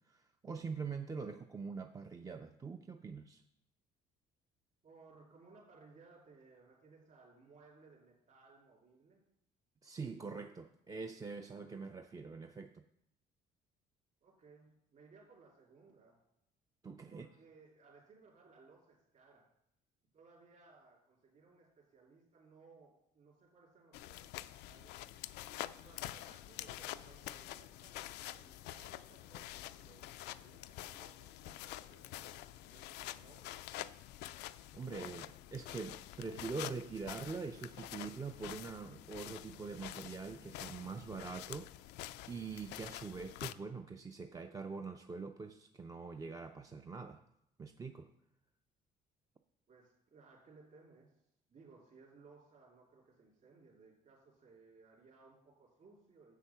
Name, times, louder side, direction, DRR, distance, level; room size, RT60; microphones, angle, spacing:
voice 1, 0.1-3.4 9.8-12.8 16.8-17.3 34.2-34.3 34.7-41.7 42.3-47.2 47.6-48.1, right 4 dB, 20° right, 6 dB, 0.5 m, -44 dB
voice 2, 4.8-9.2 14.2-16.2 17.1-19.5 20.1-25.0 25.8-33.6 49.7-51.1 51.5-56.4, right 4 dB, 50° right, -4 dB, 3.1 m, -62 dB
sound 1, 23.9-43.5, left 14 dB, 85° left, 0.4 m, -47 dB
8.2 x 7.6 x 5.8 m, 0.79 s
cardioid pair, 110°, 17 cm